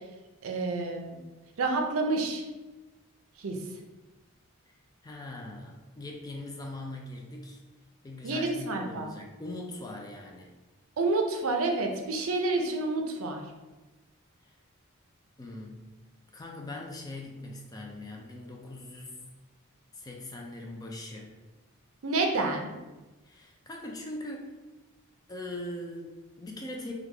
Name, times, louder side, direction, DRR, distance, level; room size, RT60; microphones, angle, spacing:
voice 1, 0.4-1.2 1.6-2.4 3.4-3.6 8.2-9.1 11.0-13.5 22.0-22.7, right 3 dB, 70° right, 3 dB, 0.5 m, -29 dB
voice 2, 5.0-7.6 8.0-10.5 14.4-14.6 15.4-15.8 16.3-19.2 19.9-21.3 23.2-24.5 25.3-26.9, left 1 dB, 15° left, 1 dB, 0.3 m, -41 dB
3.3 x 2.3 x 3.3 m, 1.2 s
head